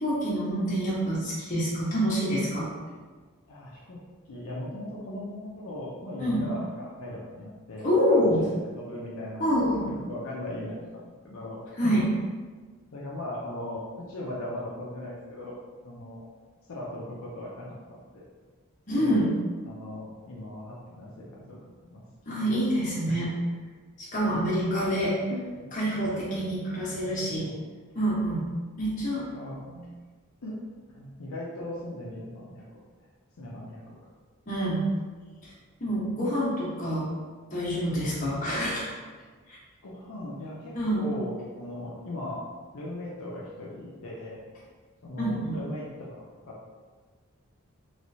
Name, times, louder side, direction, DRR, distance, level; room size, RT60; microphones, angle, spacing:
voice 1, 0.0-2.7 6.2-6.4 7.8-8.4 9.4-9.9 11.8-12.0 18.9-19.3 22.3-23.3 24.1-25.2 25.7-27.5 27.9-28.4 28.8-29.7 34.5-34.8 35.8-37.1 37.5-38.9 39.5-39.6 40.7-41.1 45.2-45.5, equal, 35° left, -8 dB, 1.1 m, -26 dB
voice 2, 3.5-4.0 4.3-9.5 10.1-11.8 12.9-15.6 15.8-16.3 16.7-18.2 18.9-19.3 19.6-22.0 22.4-22.5 22.8-22.9 25.3-25.6 26.9-27.6 29.1-29.6 30.4-30.6 30.9-32.6 33.4-34.0 39.8-42.4 42.7-44.4 45.0-46.7, left 1 dB, 70° left, -5 dB, 0.6 m, -39 dB
3.1 x 3.1 x 2.7 m, 1.4 s
head